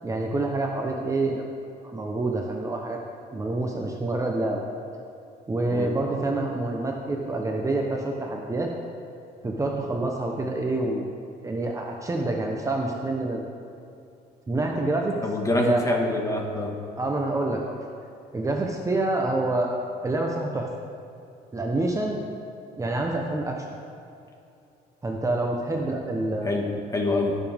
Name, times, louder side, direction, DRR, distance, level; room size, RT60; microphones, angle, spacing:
voice 1, 0.0-1.4 1.9-3.0 3.3-4.6 5.5-8.7 9.4-11.1 11.4-13.5 14.5-15.1 15.5-15.8 17.0-17.8 18.3-19.7 20.0-20.7 21.5-22.2 22.8-23.8 25.0-26.6, right 2 dB, 20° right, 0 dB, 1.0 m, -27 dB
voice 2, 15.2-16.7 26.4-27.4, left 2 dB, 20° left, 1 dB, 1.7 m, -26 dB
20.0 x 7.3 x 3.6 m, 2.7 s
cardioid pair, 110°, 17 cm